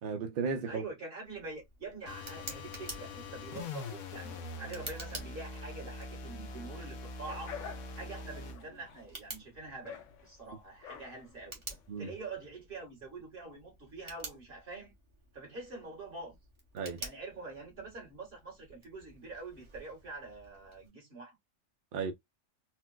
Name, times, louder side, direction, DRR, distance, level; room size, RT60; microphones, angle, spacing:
voice 1, 0.0-0.8 11.9-12.1 16.7-17.0 21.9-22.1, right 5 dB, 65° right, 0.5 m, -34 dB
voice 2, 0.6-7.6 7.9-11.6 12.0-14.9 15.3-16.4 17.0-21.3, right 3 dB, 40° right, 1.7 m, -45 dB
Tick, 1.2-20.9, right 2 dB, 25° right, 0.9 m, -51 dB
sound 1, 2.1-8.6, left 3 dB, 90° left, 1.1 m, -43 dB
sound 2, 7.3-12.3, left 7 dB, 70° left, 0.9 m, -49 dB
4.2 x 2.1 x 2.2 m
omnidirectional pair, 1.4 m